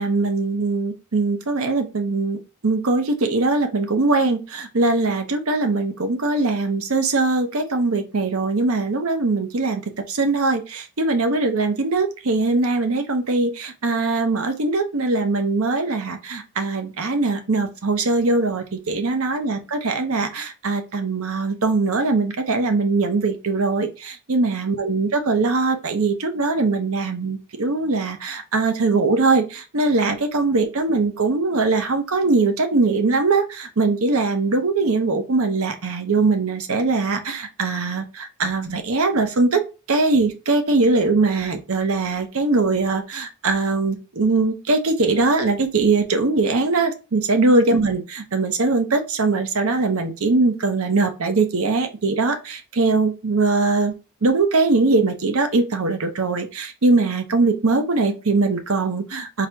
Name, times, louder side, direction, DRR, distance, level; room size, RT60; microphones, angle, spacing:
voice 1, 0.0-9.8 10.1-53.9 54.2-59.5, right 3 dB, 65° right, 7 dB, 0.8 m, -21 dB
3.9 x 2.9 x 4.5 m, 0.30 s
head